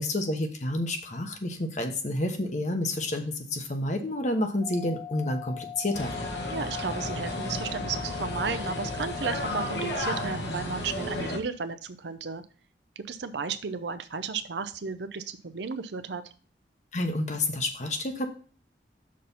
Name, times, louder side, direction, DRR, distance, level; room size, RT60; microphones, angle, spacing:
voice 1, 0.0-6.1 16.9-18.3, left 1 dB, 45° left, 5 dB, 1.0 m, -29 dB
sound 1, 4.6-10.3, left 10 dB, 25° left, 0.3 m, -41 dB
sound 2, 5.9-11.4, left 1 dB, 75° left, 1.3 m, -33 dB
voice 2, 6.5-12.4 13.0-16.2, right 5 dB, 80° right, 11 dB, 0.6 m, -34 dB
6.3 x 4.3 x 5.5 m, 0.40 s
head